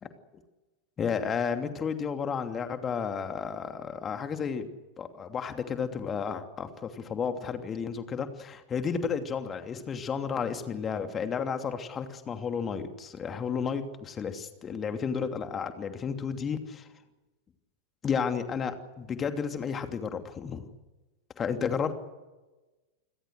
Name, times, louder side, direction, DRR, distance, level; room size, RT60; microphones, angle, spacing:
voice 1, 1.0-4.7 5.0-16.9 18.0-20.7 21.4-21.9, left 6 dB, 25° left, 7 dB, 2.8 m, -32 dB
29.0 x 21.5 x 6.5 m, 1.1 s
figure-of-eight pair, 90°, 0 cm